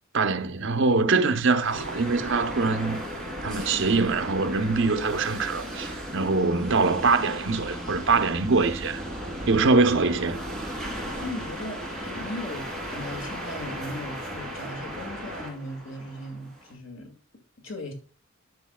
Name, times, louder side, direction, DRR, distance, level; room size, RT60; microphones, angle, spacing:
voice 1, 0.1-3.0 3.4-9.0 9.5-10.4, right 3 dB, 65° right, 0.8 m, -23 dB
sound 1, 1.6-16.7, equal, 5° left, 2.8 m, -36 dB
voice 2, 11.2-17.1 17.6-17.9, left 1 dB, 70° left, 2.0 m, -37 dB
10.5 x 7.1 x 2.3 m
head